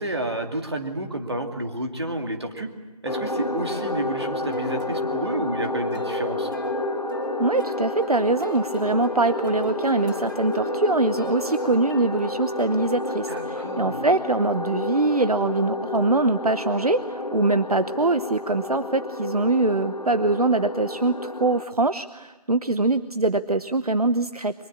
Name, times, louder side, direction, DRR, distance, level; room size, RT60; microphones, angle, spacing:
voice 1, 0.0-2.7 3.0-6.5 13.3-14.1, right 1 dB, 40° right, 3 dB, 2.5 m, -30 dB
sound 1, 3.1-21.6, left 2 dB, 65° left, 1.6 m, -30 dB
sound 2, 3.2-13.3, left 1 dB, 30° left, 4.7 m, -38 dB
voice 2, 7.4-24.5, right 2 dB, 65° right, 12 dB, 0.9 m, -23 dB
23.5 x 22.0 x 8.6 m, 1.1 s
figure-of-eight pair, 175°, 21 cm